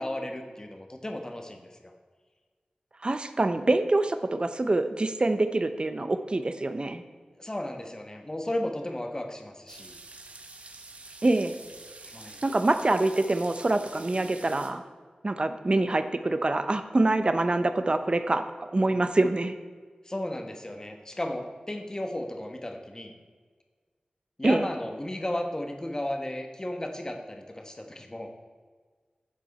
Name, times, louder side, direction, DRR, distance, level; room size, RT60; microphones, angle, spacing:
voice 1, 0.0-1.9 7.4-10.0 12.1-12.4 20.0-23.1 24.4-28.3, left 1 dB, 25° left, 4 dB, 1.3 m, -34 dB
voice 2, 3.0-7.0 11.2-11.5 12.4-14.8 15.2-19.5 24.4-24.6, right 2 dB, 40° right, 9 dB, 0.7 m, -25 dB
sound 1, 9.7-14.7, right 2 dB, 55° right, 1.1 m, -47 dB
10.5 x 7.3 x 4.2 m, 1.5 s
wide cardioid pair, 60°, 3 cm